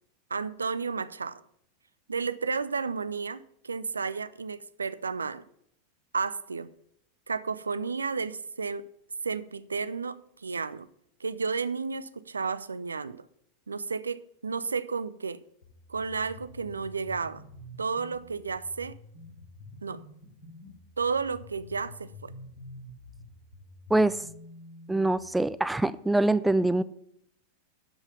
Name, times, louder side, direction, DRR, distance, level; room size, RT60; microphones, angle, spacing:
voice 1, 0.3-1.4 2.1-5.4 6.1-6.7 7.3-8.8 9.2-10.9 11.2-13.3 13.7-15.4 15.9-17.4 17.8-19.0 19.8-20.0 21.0-22.3, right 5 dB, 75° right, 0.5 m, -32 dB
sound 1, 15.6-25.7, left 2 dB, 65° left, 5.5 m, -49 dB
voice 2, 24.9-26.8, right 2 dB, 5° right, 0.5 m, -24 dB
12.5 x 5.7 x 6.8 m
figure-of-eight pair, 90°, 0 cm